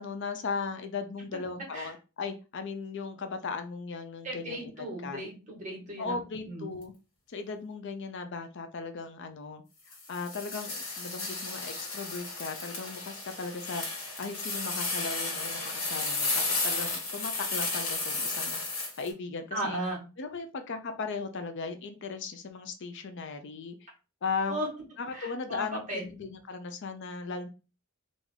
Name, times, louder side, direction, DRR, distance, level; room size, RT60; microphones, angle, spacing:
voice 1, 0.0-4.7 5.0-5.2 6.0-6.9 7.3-18.6 19.0-19.8 20.2-23.9 24.2-24.6 25.0-27.5, left 4 dB, 55° left, 7 dB, 0.5 m, -37 dB
voice 2, 4.2-6.2 6.4-6.7 19.5-20.0 24.5-24.7 25.1-26.1, right 1 dB, 35° right, -4 dB, 1.8 m, -36 dB
sound 1, 9.9-19.1, left 3 dB, 75° left, 1.7 m, -33 dB
3.5 x 2.6 x 3.3 m, 0.32 s
head